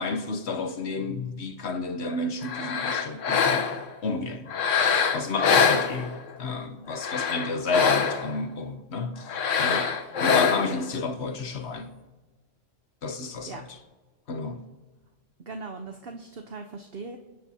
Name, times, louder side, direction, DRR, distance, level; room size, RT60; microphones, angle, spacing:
voice 1, 0.0-3.7 4.0-4.5 5.1-9.9 10.2-11.9 13.0-13.7 14.3-14.6, left 3 dB, 60° left, 1.2 m, -31 dB
sound 1, 2.4-3.9 4.5-6.4 6.9-8.4 9.3-10.9, left 6 dB, 80° left, 1.3 m, -24 dB
voice 2, 15.4-17.2, right 4 dB, 55° right, 1.1 m, -39 dB
27.5 x 10.0 x 2.8 m
omnidirectional pair, 1.3 m